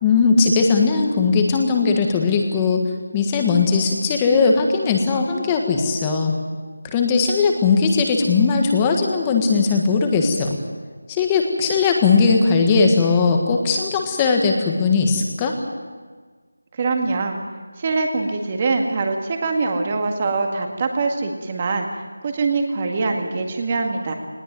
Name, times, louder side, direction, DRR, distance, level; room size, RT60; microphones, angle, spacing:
voice 1, 0.0-2.8 3.1-6.3 6.9-10.6 11.1-15.6, left 4 dB, 10° left, 3 dB, 1.5 m, -18 dB
voice 2, 16.7-17.4 17.8-21.9 22.2-24.1, right 3 dB, 20° right, 3 dB, 2.0 m, -23 dB
20.0 x 18.5 x 9.3 m, 1.5 s
figure-of-eight pair, 175°, 0 cm